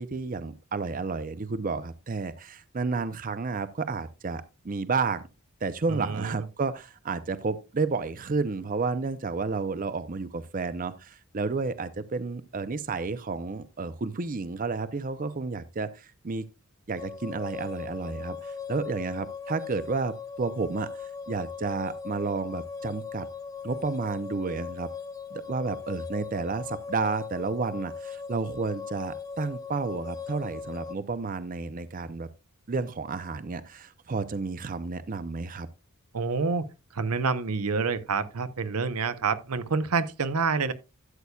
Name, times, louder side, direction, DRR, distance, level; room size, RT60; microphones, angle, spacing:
voice 1, 0.0-5.3 5.6-16.5 16.9-23.3 23.6-24.9 25.3-32.3 32.7-35.7, right 4 dB, 40° right, 0.5 m, -31 dB
voice 2, 5.9-6.4 36.1-36.7 36.9-40.7, right 4 dB, 80° right, 0.8 m, -27 dB
sound 1, 17.0-31.0, left 5 dB, 15° left, 0.4 m, -39 dB
12.5 x 8.2 x 2.3 m
head